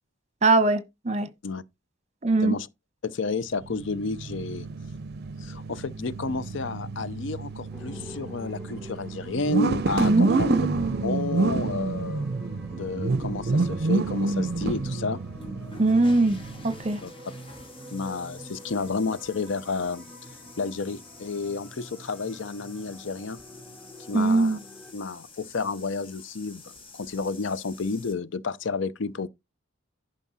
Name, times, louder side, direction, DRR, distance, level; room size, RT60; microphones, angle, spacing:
voice 1, 0.4-1.3 2.2-2.6 10.0-10.6 15.8-17.0 24.1-24.6, right 3 dB, 35° right, 1.1 m, -22 dB
voice 2, 3.0-4.7 5.4-10.7 11.0-12.3 12.7-15.2 17.0-17.1 17.9-20.1 20.6-23.4 24.1-24.6 24.9-26.6 26.9-29.3, left 4 dB, 65° left, 0.6 m, -31 dB
sound 1, 3.6-16.9, right 3 dB, 55° right, 0.6 m, -29 dB
sound 2, 7.7-24.9, equal, ahead, 3.3 m, -46 dB
sound 3, 15.2-28.1, left 3 dB, 30° left, 2.6 m, -49 dB
11.0 x 5.2 x 4.1 m
head